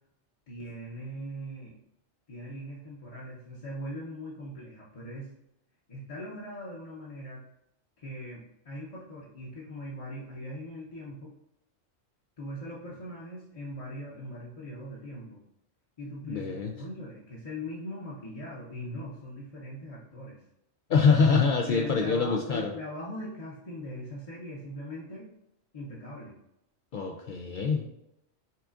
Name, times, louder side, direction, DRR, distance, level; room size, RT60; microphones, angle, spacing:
voice 1, 0.5-1.7 2.3-5.3 5.9-7.4 8.0-11.3 12.4-15.4 16.0-20.4 21.7-25.3 25.7-26.3, equal, 35° left, -7 dB, 0.7 m, -40 dB
voice 2, 16.2-16.7 20.9-22.7 26.9-27.9, left 5 dB, 75° left, 2 dB, 0.4 m, -24 dB
5.7 x 3.6 x 2.5 m, 0.83 s
omnidirectional pair, 1.4 m